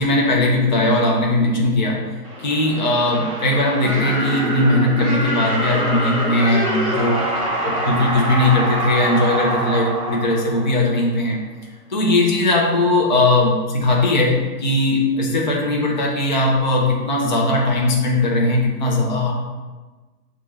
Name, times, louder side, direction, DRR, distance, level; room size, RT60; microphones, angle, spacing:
voice 1, 0.0-2.1 2.4-7.2 7.6-11.4 11.9-19.3, left 2 dB, 30° left, -2 dB, 0.4 m, -19 dB
sound 1, 2.2-11.1, right 1 dB, 20° right, 0.6 m, -25 dB
6.7 x 2.4 x 3.0 m, 1.3 s
hypercardioid pair, 155°, 48 cm